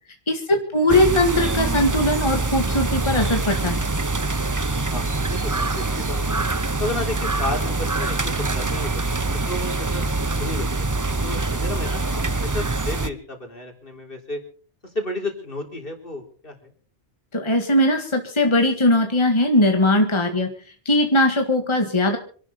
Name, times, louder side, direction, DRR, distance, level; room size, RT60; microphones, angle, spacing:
voice 1, 0.3-3.9 17.3-20.5 20.9-22.2, left 1 dB, 25° left, 4 dB, 1.9 m, -20 dB
sound 1, 0.9-13.1, right 3 dB, 20° right, 0.7 m, -24 dB
voice 2, 4.8-6.4 6.8-9.0 9.5-10.0 10.4-14.4 14.8-16.7, left 2 dB, 55° left, 3 dB, 3.9 m, -32 dB
26.5 x 12.0 x 4.2 m, 0.44 s
omnidirectional pair, 1.1 m